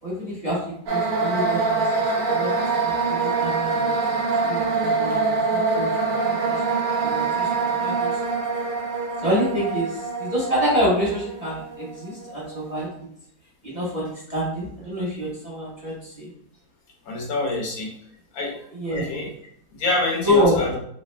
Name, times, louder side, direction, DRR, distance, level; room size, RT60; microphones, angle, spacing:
voice 1, 0.0-3.9 4.4-6.6 7.0-8.2 9.2-12.9 13.6-16.3 18.7-19.1 20.2-20.6, equal, 25° right, -7 dB, 1.1 m, -27 dB
sound 1, 0.9-12.7, right 4 dB, 60° right, 1.2 m, -25 dB
voice 2, 17.0-17.9 18.3-18.6 18.9-19.3 19.7-20.8, left 2 dB, 70° left, 0 dB, 1.0 m, -26 dB
3.1 x 2.7 x 3.2 m, 0.67 s
omnidirectional pair, 1.7 m